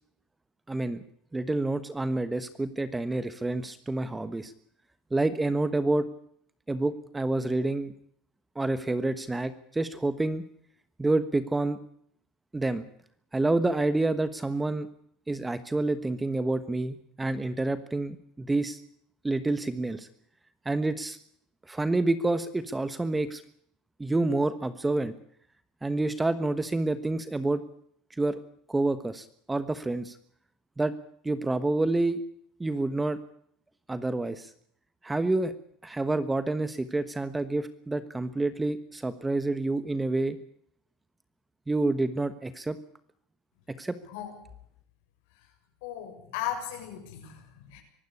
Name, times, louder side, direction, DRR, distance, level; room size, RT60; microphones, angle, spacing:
voice 1, 0.7-1.0 1.3-4.5 5.1-6.1 6.7-7.9 8.5-10.4 11.0-11.8 12.5-12.9 13.3-14.9 15.3-18.8 19.2-20.1 20.6-21.2 21.7-23.4 24.0-25.1 25.8-27.6 28.2-28.4 28.7-30.1 30.8-30.9 31.2-32.2 32.6-33.2 33.9-34.5 35.0-35.5 35.8-40.4 41.7-42.8 43.8-44.0, right 2 dB, 10° right, 13 dB, 1.3 m, -28 dB
voice 2, 44.0-44.4 45.3-45.5 45.8-47.8, left 10 dB, 75° left, 4 dB, 6.9 m, -37 dB
24.0 x 12.5 x 9.8 m, 0.67 s
supercardioid pair, 115°, 0 cm